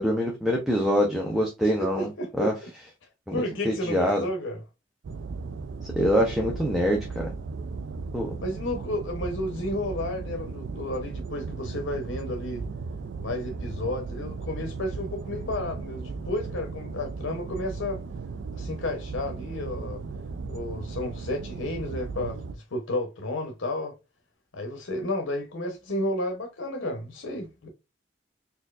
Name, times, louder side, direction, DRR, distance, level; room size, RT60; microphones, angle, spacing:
voice 1, 0.0-2.1 2.4-2.5 3.3-4.3 6.0-7.3 8.1-8.3, equal, ahead, 0.6 m, -25 dB
voice 2, 1.8-2.5 3.3-4.6 8.4-12.6 13.2-18.0 18.5-20.0 20.5-23.9 24.5-27.7, left 1 dB, 85° left, 0.8 m, -32 dB
sound 1, 5.0-22.5, right 4 dB, 75° right, 0.3 m, -36 dB
4.3 x 2.7 x 2.3 m
head